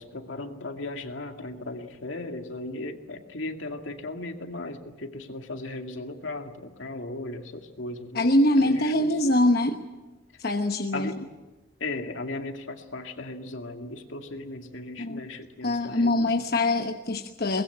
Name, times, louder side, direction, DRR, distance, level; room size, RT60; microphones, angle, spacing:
voice 1, 0.0-8.3 8.6-9.5 10.9-11.2 11.8-16.5, left 2 dB, 80° left, 4 dB, 2.3 m, -37 dB
voice 2, 8.1-9.8 10.4-11.1 15.0-15.2 15.6-17.6, left 1 dB, 50° left, 4 dB, 1.1 m, -23 dB
22.5 x 20.5 x 8.0 m, 1.1 s
head